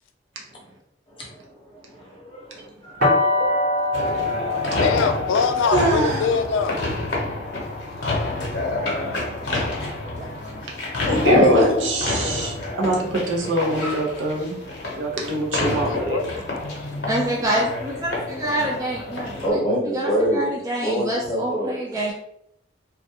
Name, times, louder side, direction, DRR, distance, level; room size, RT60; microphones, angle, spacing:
voice 1, 1.7-4.8 8.7-9.7 10.2-10.3 11.3-11.7 19.4-20.5 20.8-21.7, equal, 25° left, -3 dB, 0.6 m, -26 dB
sound 1, 3.0-8.8, left 2 dB, 50° right, 1.0 m, -26 dB
sound 2, 3.9-19.5, left 2 dB, 65° left, 0.7 m, -27 dB
voice 2, 4.8-6.8 15.8-16.3, left 5 dB, 85° left, 8 dB, 0.3 m, -23 dB
voice 3, 5.7-6.2 11.1-14.6 14.9-16.2, right 2 dB, 80° right, -2 dB, 0.6 m, -24 dB
voice 4, 17.1-22.1, right 1 dB, 20° right, -3 dB, 0.3 m, -27 dB
2.3 x 2.2 x 2.7 m, 0.77 s
head